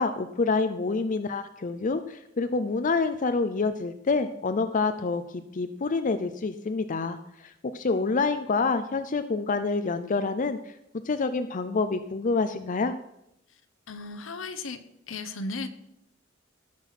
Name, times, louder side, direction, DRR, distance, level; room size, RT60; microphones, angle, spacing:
voice 1, 0.0-10.7 11.0-13.0, left 4 dB, 40° left, 10 dB, 0.5 m, -27 dB
voice 2, 13.9-14.8 15.1-15.7, left 3 dB, 75° left, 9 dB, 1.1 m, -35 dB
17.5 x 6.1 x 5.8 m, 0.82 s
head